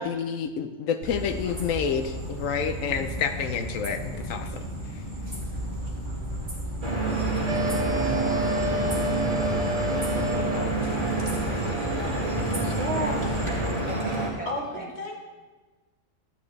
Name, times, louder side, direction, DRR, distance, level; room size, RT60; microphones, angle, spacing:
voice 1, 0.0-4.7 4.9-5.0, left 7 dB, 90° left, 8 dB, 1.0 m, -29 dB
sound 1, 1.0-13.7, equal, 25° right, 2.0 m, -34 dB
Stream / Boat Water vehicle, 6.8-14.3, right 2 dB, 40° right, 1.9 m, -27 dB
sound 2, 7.5-11.0, left 1 dB, 60° right, 0.4 m, -30 dB
voice 2, 7.9-9.9 10.2-13.5 13.9-14.9, right 1 dB, 5° right, -4 dB, 1.6 m, -41 dB
voice 3, 12.5-13.3 14.5-15.2, equal, 55° left, -1 dB, 1.7 m, -32 dB
12.5 x 8.4 x 3.2 m, 1.3 s
omnidirectional pair, 1.3 m